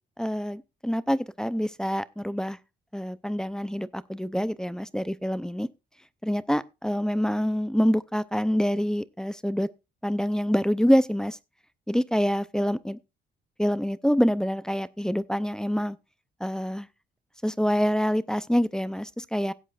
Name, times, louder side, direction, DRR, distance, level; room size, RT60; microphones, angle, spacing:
voice 1, 0.2-2.6 2.9-5.7 6.2-9.7 10.0-11.4 11.9-13.0 13.6-16.0 16.4-16.9 17.4-19.5, equal, 5° left, 0.6 m, -26 dB
17.0 x 8.2 x 2.5 m
cardioid pair, 90°, 20 cm